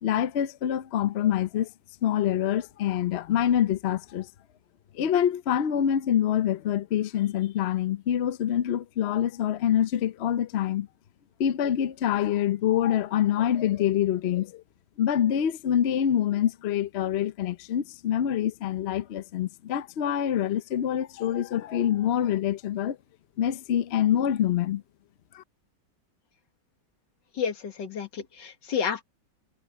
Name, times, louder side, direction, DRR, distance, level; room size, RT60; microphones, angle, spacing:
voice 1, 0.0-1.7 2.0-4.3 4.9-10.9 11.4-14.6 15.0-23.0 23.4-24.8 25.3-25.4, left 10 dB, 60° left, 0.6 m, -26 dB
voice 2, 27.3-29.0, left 7 dB, 80° left, 2.4 m, -30 dB
omnidirectional pair, 1.9 m